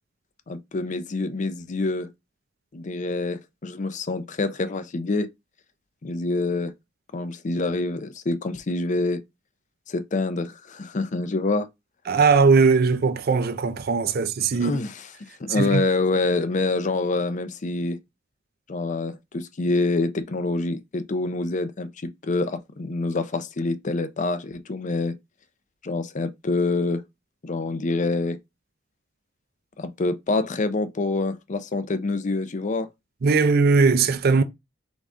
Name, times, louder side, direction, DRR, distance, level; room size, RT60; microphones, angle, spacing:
voice 1, 0.5-2.1 2.7-5.3 6.0-6.7 7.1-9.2 9.9-11.7 14.6-15.1 15.4-18.0 18.7-25.2 25.8-27.0 27.4-28.4 29.8-32.9, left 3 dB, 40° left, 0.5 m, -26 dB
voice 2, 12.1-14.8 15.5-15.8 33.2-34.4, right 4 dB, 55° right, 0.5 m, -19 dB
3.9 x 3.5 x 3.6 m
head